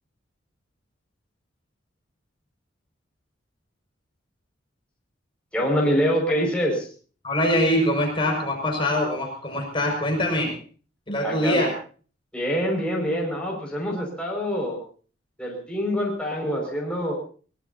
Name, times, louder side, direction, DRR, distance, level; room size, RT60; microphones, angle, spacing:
voice 1, 5.5-6.9 11.2-11.6 12.3-14.8 15.4-17.1, equal, 5° left, -2 dB, 5.7 m, -25 dB
voice 2, 7.2-10.6 11.1-11.7, left 1 dB, 25° left, 1 dB, 5.8 m, -23 dB
23.5 x 20.5 x 2.8 m, 0.41 s
head